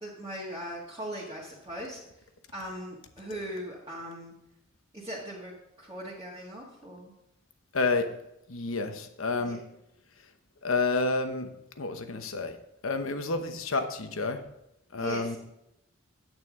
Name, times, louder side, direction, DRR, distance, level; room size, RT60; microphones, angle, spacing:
voice 1, 0.0-2.2 2.5-4.3 4.9-5.5 5.8-7.1 9.4-9.6 15.0-15.4, equal, 20° right, -8 dB, 1.7 m, -39 dB
voice 2, 7.7-8.1 8.5-9.6 10.6-11.5 11.8-12.6 12.8-14.4 14.9-15.4, left 3 dB, 80° left, 8 dB, 1.0 m, -29 dB
9.0 x 8.9 x 3.7 m, 0.85 s
head